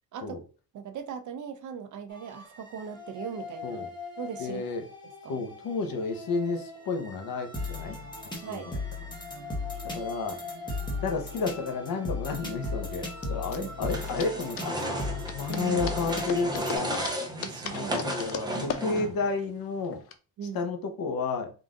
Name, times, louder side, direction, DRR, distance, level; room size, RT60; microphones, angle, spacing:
voice 1, 0.7-3.8 4.2-4.6 5.2-5.4 8.4-8.7 10.5-10.6 13.6-13.7 15.5-15.8 16.1-16.2 17.3-18.1 20.4-20.6, right 7 dB, 50° right, 0.5 m, -39 dB
sound 1, 2.1-16.8, left 3 dB, 10° left, 0.9 m, -37 dB
voice 2, 4.4-4.8 5.3-8.0 8.3-8.8 9.9-10.4 11.0-14.8 15.3-17.1 17.7-20.0 20.5-21.5, left 4 dB, 65° left, 0.9 m, -31 dB
sound 2, 11.2-20.2, left 7 dB, 40° left, 0.4 m, -40 dB
sound 3, 13.9-19.3, right 1 dB, 10° right, 0.6 m, -34 dB
3.8 x 2.5 x 3.6 m
wide cardioid pair, 165°, 38 cm